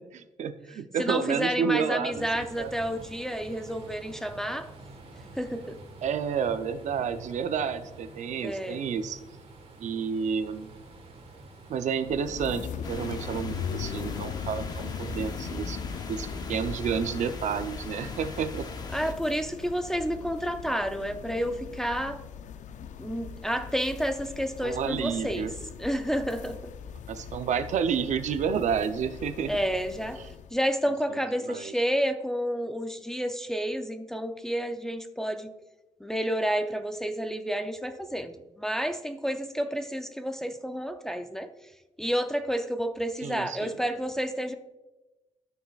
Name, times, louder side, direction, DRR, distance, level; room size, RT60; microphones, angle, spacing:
voice 1, 0.1-2.7 6.0-9.2 9.8-10.7 11.7-15.8 16.1-18.7 24.6-25.5 27.1-29.6 31.1-31.7 43.2-43.8, right 7 dB, 70° right, 10 dB, 0.5 m, -30 dB
voice 2, 1.0-4.7 5.4-5.8 8.4-8.8 18.9-22.2 23.0-25.5 25.8-26.7 29.4-30.2 30.5-35.5 36.0-41.5 42.0-44.5, equal, 5° left, 6 dB, 0.4 m, -30 dB
sound 1, 2.1-16.3, right 2 dB, 50° right, 1.4 m, -49 dB
sound 2, 12.1-30.6, left 8 dB, 75° left, 0.5 m, -40 dB
sound 3, 12.8-19.1, left 3 dB, 30° left, 0.7 m, -39 dB
13.0 x 6.3 x 2.3 m, 1.1 s
wide cardioid pair, 165°, 13 cm